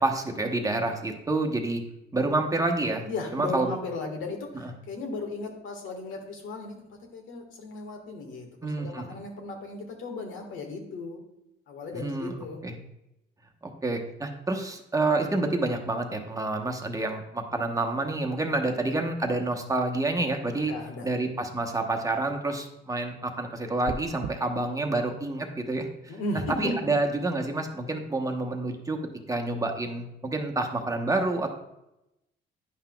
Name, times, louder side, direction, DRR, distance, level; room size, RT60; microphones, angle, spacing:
voice 1, 0.0-1.8 2.1-3.0 3.3-3.7 8.6-9.0 11.9-12.3 12.6-12.7 13.6-20.7 21.0-26.1 26.6-29.0 29.3-31.5, right 2 dB, 15° right, 3 dB, 1.0 m, -28 dB
voice 2, 3.0-11.2 11.7-12.6 20.6-21.1 26.1-26.9, left 2 dB, 85° left, 2 dB, 1.6 m, -36 dB
sound 1, 23.8-24.3, right 7 dB, 55° right, 0.4 m, -34 dB
10.0 x 5.7 x 2.3 m, 0.89 s
cardioid pair, 90°, 20 cm